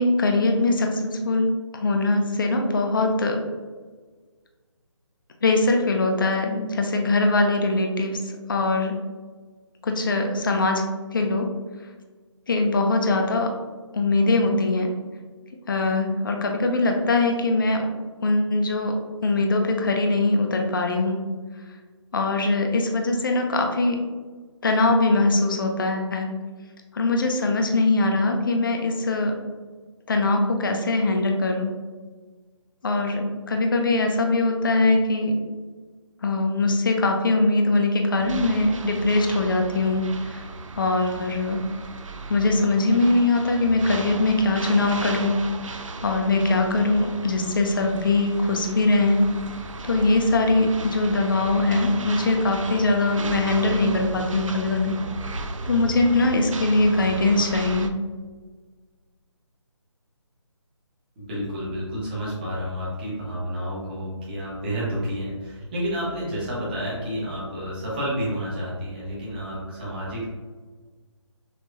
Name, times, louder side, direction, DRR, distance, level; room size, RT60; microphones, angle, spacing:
voice 1, 0.0-1.5 1.7-3.5 5.4-9.0 9.8-11.5 12.5-13.5 13.9-14.9 15.7-17.9 18.2-18.9 19.2-21.2 22.1-24.0 24.6-26.3 26.9-29.4 30.1-31.8 32.8-35.4 36.2-40.4 40.8-41.7 42.3-45.5 46.0-49.3 49.8-55.0 55.7-58.0, left 2 dB, 40° left, 3 dB, 0.6 m, -22 dB
sound 1, 38.2-57.9, right 3 dB, 85° right, 0.5 m, -35 dB
voice 2, 61.2-70.2, equal, 20° right, -7 dB, 1.3 m, -30 dB
6.4 x 3.0 x 2.7 m, 1.4 s
hypercardioid pair, 170°, 16 cm